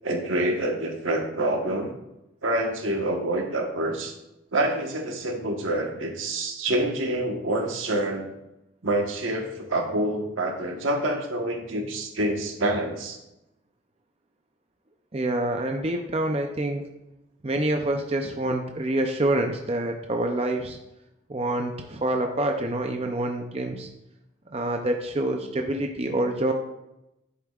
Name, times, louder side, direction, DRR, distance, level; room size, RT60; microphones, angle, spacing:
voice 1, 0.0-1.9 2.4-4.1 4.5-8.3 8.8-13.2, right 1 dB, 75° right, 3 dB, 1.3 m, -27 dB
voice 2, 15.1-16.8 17.4-20.8 21.3-23.9 24.5-26.5, right 1 dB, 30° right, 3 dB, 0.5 m, -26 dB
10.5 x 8.2 x 2.4 m, 0.90 s
head